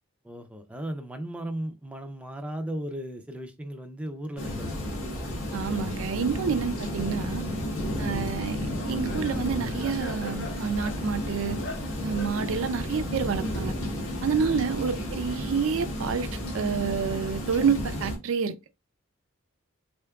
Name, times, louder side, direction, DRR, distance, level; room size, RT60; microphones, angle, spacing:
voice 1, 0.2-5.4 14.4-14.6, right 1 dB, 5° right, 0.4 m, -37 dB
sound 1, 4.4-18.2, left 1 dB, 80° left, 1.3 m, -32 dB
voice 2, 5.5-7.5 8.0-11.6 12.0-13.7 14.2-18.6, right 6 dB, 70° right, 0.4 m, -28 dB
Laughter, 8.2-14.1, left 2 dB, 55° left, 0.8 m, -43 dB
3.6 x 3.4 x 2.3 m
head